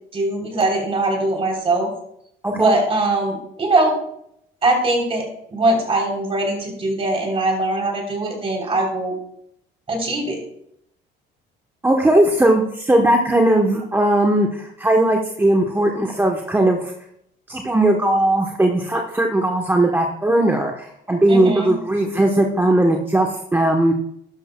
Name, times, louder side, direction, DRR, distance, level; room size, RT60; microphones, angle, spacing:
voice 1, 0.1-1.9 2.5-4.0 4.6-5.2 5.5-9.1 9.9-10.4 21.3-21.7, right 2 dB, 30° right, 1 dB, 3.4 m, -21 dB
voice 2, 11.8-16.9 17.5-23.9, right 1 dB, 10° right, 2 dB, 0.9 m, -18 dB
12.0 x 11.5 x 2.2 m, 0.74 s
cardioid pair, 125°, 19 cm